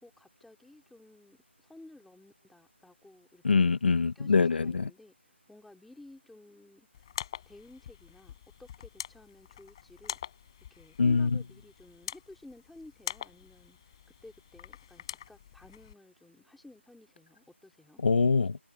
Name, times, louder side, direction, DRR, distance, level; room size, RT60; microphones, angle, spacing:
voice 1, 0.0-3.6 4.1-7.1 7.5-10.2 10.7-13.9 14.2-18.0, left 2 dB, ahead, 2.7 m, -54 dB
voice 2, 3.4-4.9 11.0-11.4 18.0-18.6, left 4 dB, 55° left, 0.7 m, -24 dB
sound 1, 6.9-15.9, left 10 dB, 25° left, 4.6 m, -44 dB
figure-of-eight pair, 170°, 7 cm